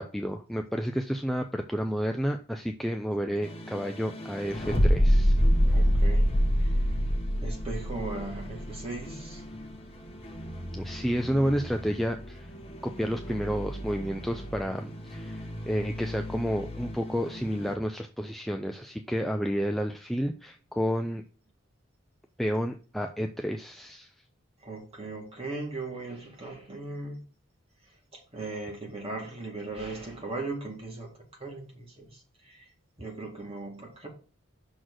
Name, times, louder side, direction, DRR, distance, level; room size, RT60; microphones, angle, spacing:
voice 1, 0.0-5.4 10.7-12.5 12.8-21.2 22.4-24.1, equal, ahead, 0.3 m, -30 dB
sound 1, 3.4-17.7, equal, 25° left, 1.1 m, -28 dB
voice 2, 5.6-6.3 6.6-6.7 7.4-9.4 24.6-27.2 28.1-31.1 31.4-32.2 32.5-32.7 33.0-34.1, right 2 dB, 30° right, 2.1 m, -38 dB
6.2 x 4.0 x 6.3 m
head